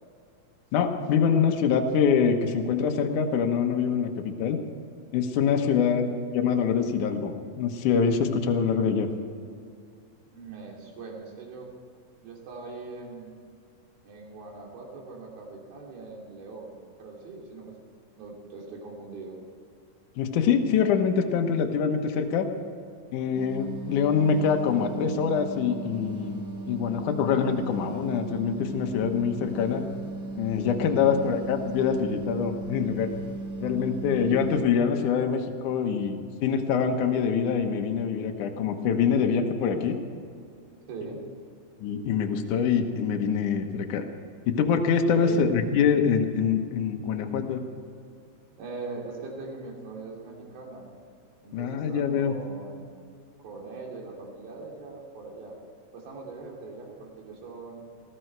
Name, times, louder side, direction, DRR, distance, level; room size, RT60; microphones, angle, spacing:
voice 1, 0.7-4.6 5.1-6.1 6.3-9.1 20.2-22.5 23.1-26.4 26.7-29.8 30.4-33.1 33.6-40.0 41.8-44.0 44.5-47.6 51.5-52.3, left 6 dB, 65° left, 4 dB, 2.4 m, -25 dB
voice 2, 5.6-6.1 10.3-11.7 12.2-13.3 14.0-17.7 18.2-19.4 31.1-31.3 40.9-41.2 45.1-45.7 48.6-50.9 51.4-53.0 53.4-55.5 55.9-57.9, right 3 dB, 70° right, -1 dB, 4.5 m, -41 dB
sound 1, 23.3-34.6, right 2 dB, 30° right, 1.6 m, -37 dB
19.5 x 15.5 x 4.6 m, 2.4 s
omnidirectional pair, 4.4 m